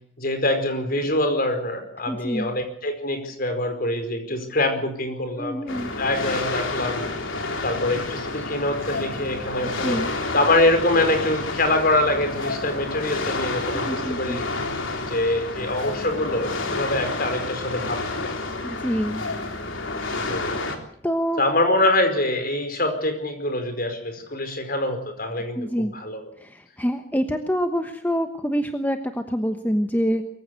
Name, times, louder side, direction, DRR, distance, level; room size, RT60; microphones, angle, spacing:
voice 1, 0.2-5.6 6.0-7.1 7.6-10.0 10.3-14.4 15.0-18.3 20.3-20.6 21.4-26.2, left 1 dB, 45° left, 7 dB, 4.9 m, -24 dB
voice 2, 2.1-2.5 5.4-5.9 9.6-10.1 13.7-14.4 18.6-19.2 21.0-21.4 25.5-25.9 26.4-30.2, equal, 10° left, 6 dB, 1.1 m, -26 dB
sound 1, 5.7-20.8, left 3 dB, 75° left, 3.5 m, -29 dB
23.5 x 15.5 x 8.3 m, 0.64 s
head